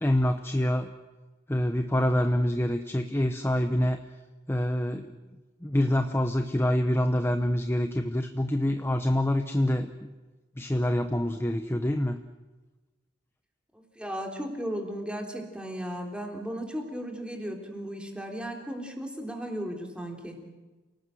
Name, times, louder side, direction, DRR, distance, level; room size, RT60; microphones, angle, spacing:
voice 1, 0.0-0.9 1.5-4.0 4.5-5.1 5.6-10.1 10.6-12.2, left 1 dB, 15° left, 7 dB, 0.9 m, -26 dB
voice 2, 13.7-20.4, equal, 5° right, 2 dB, 3.6 m, -35 dB
28.5 x 18.5 x 7.8 m, 1.2 s
head